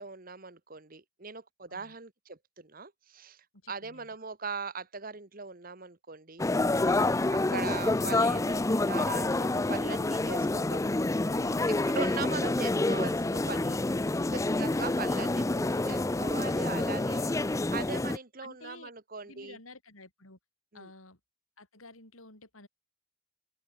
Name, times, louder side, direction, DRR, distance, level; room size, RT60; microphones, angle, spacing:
voice 1, 0.0-6.4 7.3-10.8 11.9-13.8 14.3-17.4 17.7-19.6 20.7-20.9, right 4 dB, 45° right, 1.6 m, -40 dB
voice 2, 3.6-4.1 11.3-12.0 18.4-18.9 19.2-20.4 20.7-21.2 21.6-22.7, left 2 dB, 85° left, 7.6 m, -52 dB
sound 1, 6.4-18.2, left 2 dB, 15° left, 0.4 m, -28 dB
open air
head